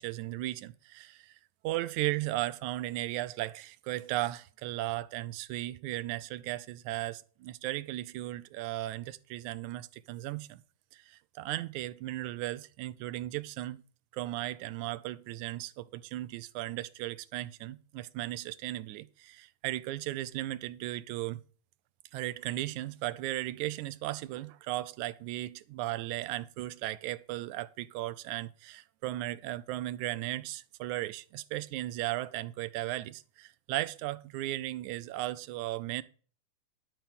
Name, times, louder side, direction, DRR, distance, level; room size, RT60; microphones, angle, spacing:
voice 1, 0.0-1.4 1.6-10.6 10.9-13.8 14.1-21.4 22.1-36.0, right 16 dB, 85° right, 2.0 m, -36 dB
11.0 x 4.6 x 7.1 m
omnidirectional pair, 3.4 m